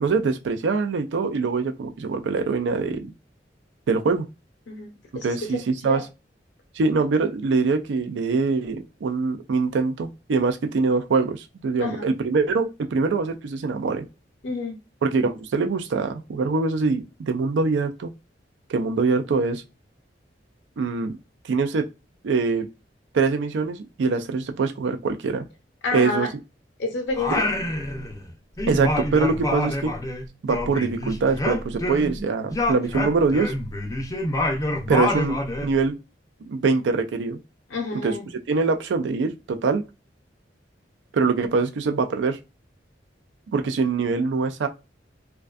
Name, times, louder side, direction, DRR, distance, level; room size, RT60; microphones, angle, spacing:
voice 1, 0.0-3.1 3.9-4.3 5.2-6.0 6.8-14.1 15.0-18.1 18.7-19.6 20.8-21.2 21.5-21.8 22.2-22.7 23.1-25.5 25.9-26.3 27.3-27.4 28.7-29.9 30.4-33.5 34.9-36.0 36.4-37.4 37.9-38.1 38.5-39.8 41.1-42.4 43.5-44.7, right 4 dB, 80° right, 0.4 m, -23 dB
voice 2, 4.7-5.5 5.9-6.0 11.8-12.1 14.4-14.8 25.8-26.3 26.8-27.6 37.7-38.3, left 3 dB, 70° left, 0.6 m, -29 dB
Singing, 27.1-28.3 28.6-32.2 32.5-35.7, left 1 dB, 20° left, 0.4 m, -27 dB
2.5 x 2.2 x 2.3 m
head